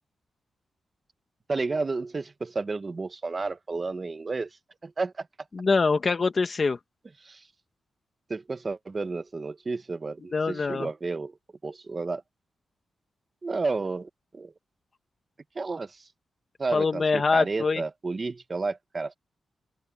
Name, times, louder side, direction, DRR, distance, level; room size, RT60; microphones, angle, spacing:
voice 1, 1.5-4.5 4.8-5.3 7.2-7.5 8.3-11.4 11.6-12.2 13.4-14.5 15.5-16.1 16.6-19.1, right 3 dB, 25° right, 1.0 m, -31 dB
voice 2, 5.5-6.8 10.3-10.9 16.7-17.8, left 4 dB, 35° left, 1.3 m, -24 dB
open air
wide cardioid pair, 155°, 0 cm